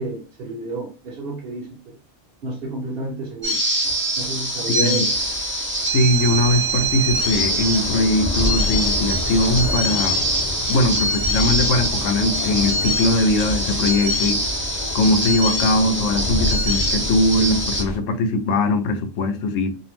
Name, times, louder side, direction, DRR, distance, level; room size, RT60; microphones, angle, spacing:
voice 1, 0.0-1.9 2.4-3.6 4.2-5.1, right 2 dB, 55° right, 0.8 m, -31 dB
sound 1, 3.4-17.8, right 1 dB, 15° right, 0.6 m, -24 dB
voice 2, 4.7-5.1 5.9-10.2 10.7-14.4 14.9-19.8, left 2 dB, 85° left, 0.9 m, -20 dB
Thunder / Rain, 5.1-18.0, left 1 dB, 45° left, 0.6 m, -29 dB
2.5 x 2.0 x 3.0 m
omnidirectional pair, 1.3 m